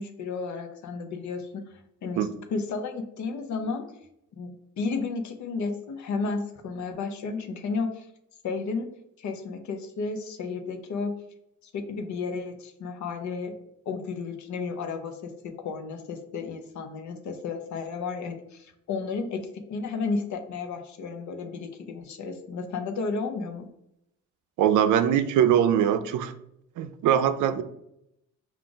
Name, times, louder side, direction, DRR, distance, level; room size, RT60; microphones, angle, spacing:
voice 1, 0.0-1.6 2.0-3.9 4.4-8.1 8.4-8.9 9.2-11.1 11.6-13.5 13.9-23.7, left 4 dB, 70° left, 6 dB, 0.7 m, -33 dB
voice 2, 24.6-26.3 26.8-27.6, right 9 dB, 80° right, 11 dB, 0.5 m, -22 dB
4.9 x 2.4 x 3.8 m, 0.79 s
cardioid pair, 90°, 30 cm